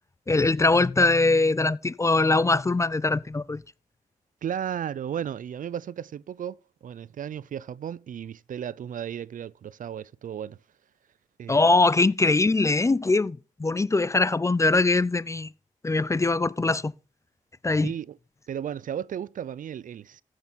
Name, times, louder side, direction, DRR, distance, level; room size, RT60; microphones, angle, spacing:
voice 1, 0.3-3.6 11.5-15.5 15.8-16.9 17.6-17.9, left 3 dB, 20° left, 0.4 m, -22 dB
voice 2, 4.4-6.6 6.8-10.6 11.4-11.8 17.8-18.2 18.5-20.2, right 9 dB, 70° right, 0.4 m, -34 dB
14.0 x 6.6 x 4.0 m
cardioid pair, 65°, 14 cm